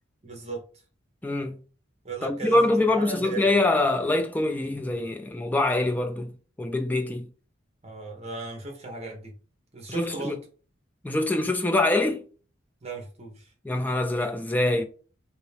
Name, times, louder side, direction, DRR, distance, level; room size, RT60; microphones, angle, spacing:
voice 1, 0.2-0.6 2.0-3.5 7.8-9.3 9.7-10.4 12.8-13.5, right 3 dB, 30° right, 1.0 m, -37 dB
voice 2, 1.2-1.6 2.2-6.3 6.6-7.3 9.9-10.4 11.0-12.3 13.6-14.8, left 2 dB, 10° left, 0.3 m, -24 dB
2.9 x 2.8 x 3.3 m
head